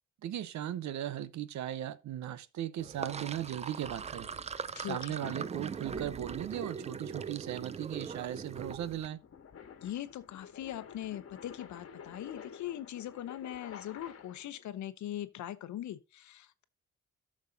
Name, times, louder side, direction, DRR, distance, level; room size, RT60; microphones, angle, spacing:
voice 1, 0.2-4.3 4.8-9.2, right 11 dB, 70° right, 0.8 m, -37 dB
Sink (filling or washing), 2.8-9.1, right 6 dB, 20° right, 0.4 m, -41 dB
voice 2, 4.8-5.4 9.8-16.6, left 12 dB, 70° left, 0.9 m, -41 dB
sound 1, 7.0-14.6, left 7 dB, 50° left, 1.5 m, -51 dB
13.0 x 6.4 x 2.7 m
cardioid pair, 90°, 30 cm